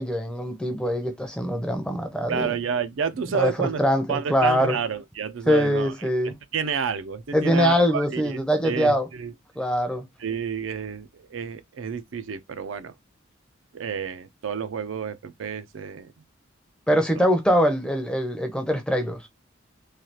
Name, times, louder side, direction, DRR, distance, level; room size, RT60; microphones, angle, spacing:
voice 1, 0.0-2.5 3.3-4.8 5.5-6.3 7.3-9.1 9.6-10.1 16.9-19.2, equal, 5° left, 0.5 m, -23 dB
voice 2, 2.3-3.8 4.1-9.3 10.2-12.9 13.7-16.1 17.1-17.3, right 6 dB, 70° right, 0.4 m, -30 dB
3.2 x 2.3 x 2.8 m
head